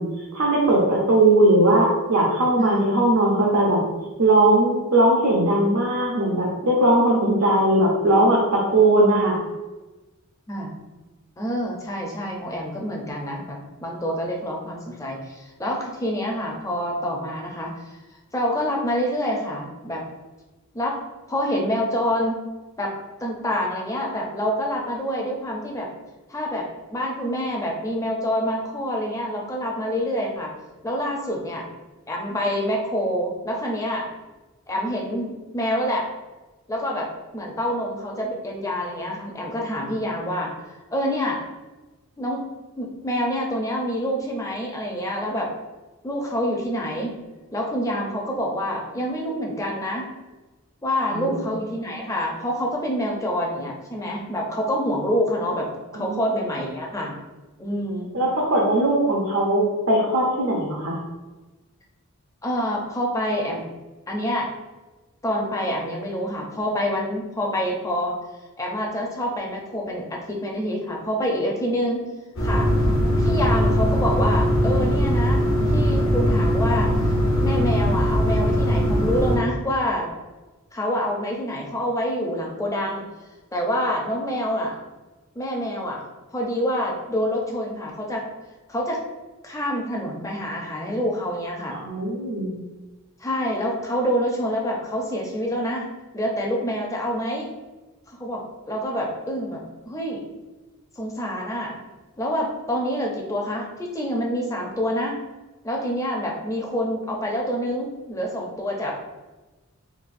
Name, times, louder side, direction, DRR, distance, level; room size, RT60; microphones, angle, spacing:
voice 1, 0.0-3.8 4.2-9.4 51.1-51.4 55.9-56.2 58.1-61.0 91.8-92.6, right 1 dB, 75° right, -4 dB, 0.6 m, -19 dB
voice 2, 11.4-18.0 18.3-20.0 20.7-21.0 21.3-22.4 22.8-22.9 23.2-25.9 26.3-30.5 30.8-31.7 32.1-34.1 34.7-36.1 36.7-40.5 40.9-41.4 42.2-42.5 42.8-45.5 46.0-47.1 47.5-50.1 50.8-55.7 55.9-57.2 57.6-58.1 62.4-63.6 64.1-64.5 65.2-68.2 68.6-72.1 72.4-72.7 73.2-75.4 75.7-76.9 77.4-80.1 80.7-83.0 83.5-84.8 85.4-86.0 86.3-88.2 88.7-89.0 89.4-91.8 93.2-95.9 96.1-97.5 98.1-98.4 98.7-99.6 99.9-100.2 101.0-101.8 102.2-105.1 105.6-108.9, equal, 15° left, -1 dB, 0.5 m, -27 dB
sound 1, 72.4-79.4, equal, 60° left, 0.7 m, -20 dB
4.0 x 2.4 x 2.5 m, 1.2 s
head